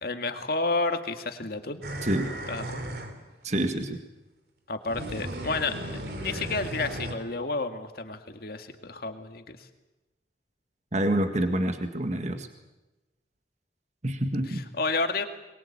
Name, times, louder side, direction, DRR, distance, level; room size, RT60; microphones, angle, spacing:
voice 1, 0.0-1.8 2.5-2.9 4.7-9.6 14.5-15.3, left 3 dB, 60° left, 7 dB, 2.1 m, -31 dB
sound 1, 1.8-3.2 4.9-7.1, right 1 dB, 60° right, 3.2 m, -35 dB
voice 2, 3.4-4.0 10.9-12.5 14.0-14.6, right 1 dB, 40° right, 7 dB, 1.9 m, -27 dB
23.0 x 22.0 x 8.7 m, 1.1 s
head